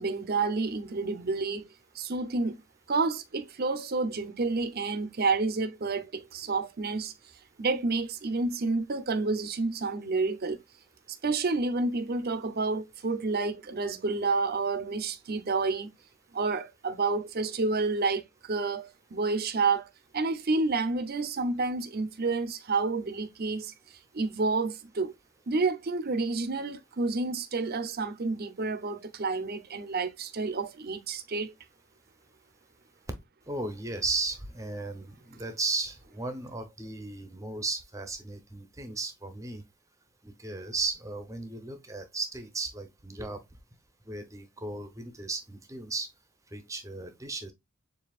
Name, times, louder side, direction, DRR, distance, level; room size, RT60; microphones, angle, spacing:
voice 1, 0.0-1.7 1.9-2.6 2.9-7.1 7.6-10.6 11.2-15.9 16.3-23.7 24.1-25.1 25.5-31.5, right 3 dB, 50° right, 0.7 m, -29 dB
voice 2, 33.5-39.6 40.2-43.4 44.1-46.1 46.5-47.5, right 3 dB, 15° right, 0.8 m, -35 dB
7.2 x 2.8 x 2.4 m
head